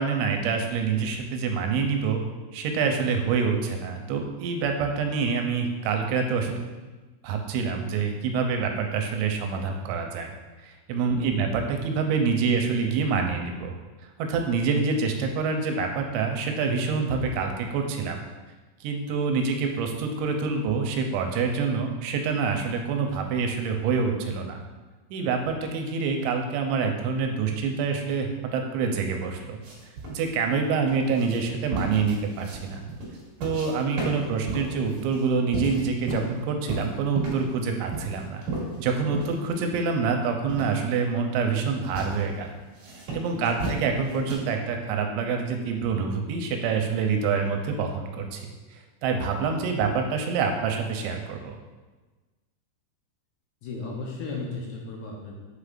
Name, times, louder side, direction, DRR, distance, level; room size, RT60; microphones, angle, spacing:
voice 1, 0.0-2.2 2.5-6.6 7.2-10.3 10.6-13.7 14.2-18.2 18.8-24.6 25.1-29.6 30.1-32.8 33.4-38.4 38.8-42.5 43.1-51.6, right 5 dB, 90° right, 3 dB, 2.9 m, -26 dB
voice 2, 11.1-11.4 43.3-43.6 53.6-55.3, left 3 dB, 80° left, -2 dB, 2.6 m, -35 dB
sound 1, 29.6-33.7 34.0-36.4 36.7-37.5 37.9-39.4 39.8-39.9 40.5-40.7 41.3-41.6 42.0-42.2 42.7-44.3, right 2 dB, 50° right, 2.5 m, -33 dB
8.0 x 5.0 x 2.4 m, 1.3 s
omnidirectional pair, 5.2 m